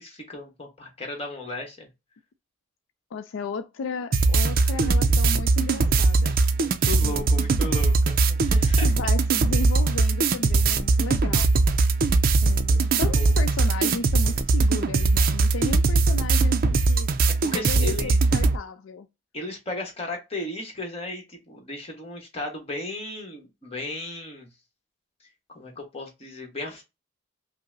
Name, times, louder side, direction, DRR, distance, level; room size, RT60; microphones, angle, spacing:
voice 1, 0.0-1.9 4.5-5.2 6.6-8.9 12.7-12.8 13.1-13.3 17.4-18.2 19.3-24.5 25.5-26.8, left 2 dB, 30° left, 1.2 m, -35 dB
voice 2, 3.1-6.3 7.0-7.4 8.8-11.5 12.4-17.1 17.5-19.1, left 4 dB, 80° left, 0.4 m, -34 dB
sound 1, 4.1-18.6, right 3 dB, 45° right, 0.4 m, -21 dB
5.3 x 2.0 x 2.6 m
head